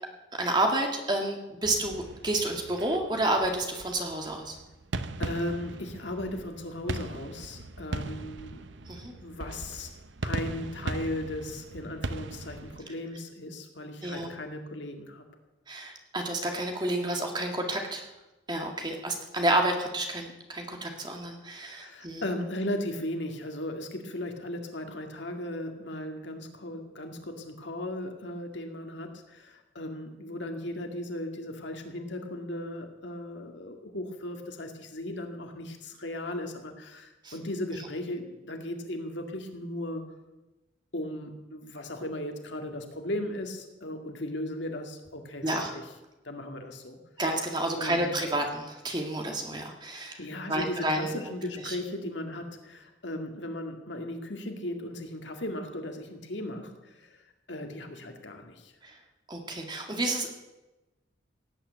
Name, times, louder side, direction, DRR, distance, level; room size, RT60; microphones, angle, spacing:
voice 1, 0.4-4.6 8.9-9.1 14.0-14.3 15.7-18.1 18.5-22.2 37.2-37.3 45.4-45.7 47.2-50.2 50.5-51.1 51.6-51.8 58.8-59.0 59.3-60.3, right 1 dB, 25° right, 3 dB, 2.0 m, -30 dB
sound 1, 1.6-12.8, right 2 dB, 75° right, 0.8 m, -39 dB
voice 2, 5.2-8.6 9.2-9.9 10.2-15.3 21.6-40.1 40.9-45.7 46.2-47.0 47.8-48.1 50.2-58.7, left 1 dB, 70° left, 4 dB, 2.1 m, -37 dB
17.5 x 8.8 x 8.1 m, 1.0 s
head